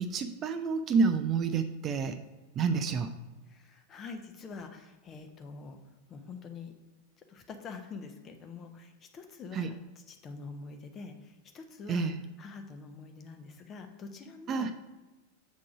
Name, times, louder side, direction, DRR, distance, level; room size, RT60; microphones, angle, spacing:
voice 1, 0.0-2.2 2.6-3.1 9.5-9.7 11.9-12.2 14.5-14.7, right 5 dB, 30° right, 9 dB, 0.4 m, -29 dB
voice 2, 3.5-5.8 6.1-6.7 7.3-9.8 10.1-12.1 12.4-14.7, left 4 dB, 25° left, 6 dB, 0.8 m, -45 dB
7.3 x 3.7 x 4.7 m, 1.2 s
figure-of-eight pair, 90°, 0 cm